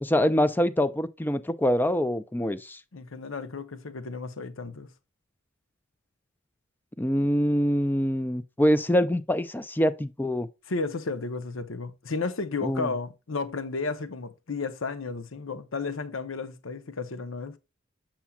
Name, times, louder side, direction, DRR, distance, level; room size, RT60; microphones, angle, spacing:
voice 1, 0.0-2.8 7.0-10.5 12.6-12.9, equal, 10° left, 0.4 m, -25 dB
voice 2, 2.9-4.9 10.7-17.6, left 4 dB, 85° left, 0.8 m, -33 dB
7.2 x 7.0 x 2.3 m
head